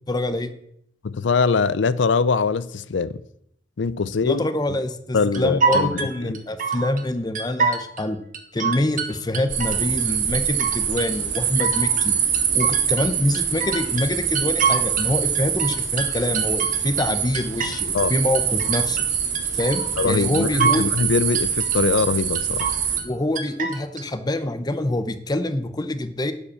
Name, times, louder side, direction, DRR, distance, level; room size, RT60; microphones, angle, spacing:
voice 1, 0.1-0.5 4.2-8.2 8.5-12.2 12.5-19.0 19.5-20.9 23.0-26.3, left 1 dB, 20° left, 0.7 m, -25 dB
voice 2, 1.0-3.2 3.8-4.5 5.1-6.3 17.9-18.1 20.0-22.7, left 4 dB, 75° left, 0.5 m, -22 dB
sound 1, 5.3-7.0 7.4-8.0 8.3-10.1 10.3-11.1 11.4-15.1 15.4-18.1 18.3-19.1 19.4-20.1 20.3-21.1 21.3-22.1 22.3-23.1 23.4-24.0, right 5 dB, 45° right, 1.3 m, -26 dB
sound 2, 9.5-23.0, right 8 dB, 70° right, 1.8 m, -24 dB
11.0 x 5.2 x 7.1 m
head